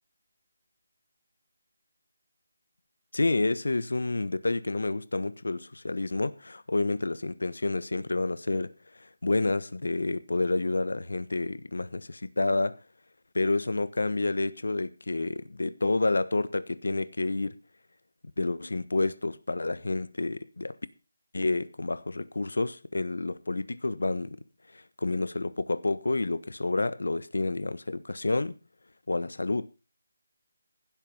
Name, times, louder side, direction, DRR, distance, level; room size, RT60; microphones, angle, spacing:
voice 1, 3.1-8.7 9.0-12.8 13.3-17.6 18.4-20.7 21.3-24.4 24.7-28.5 29.1-29.7, left 2 dB, 85° left, 1.1 m, -29 dB
16.5 x 7.6 x 5.3 m
figure-of-eight pair, 175°, 0 cm